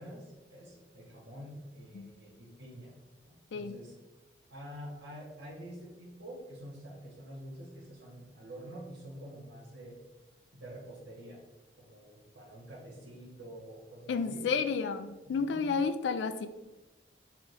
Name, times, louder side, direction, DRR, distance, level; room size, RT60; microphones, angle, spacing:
voice 1, 0.0-2.9 3.2-3.9 4.5-10.0 10.5-11.4 11.8-14.4 15.3-15.6, equal, 90° right, -7 dB, 1.2 m, -47 dB
voice 2, 14.1-16.5, left 5 dB, 75° left, 11 dB, 0.3 m, -31 dB
3.7 x 3.0 x 3.2 m, 1.1 s
head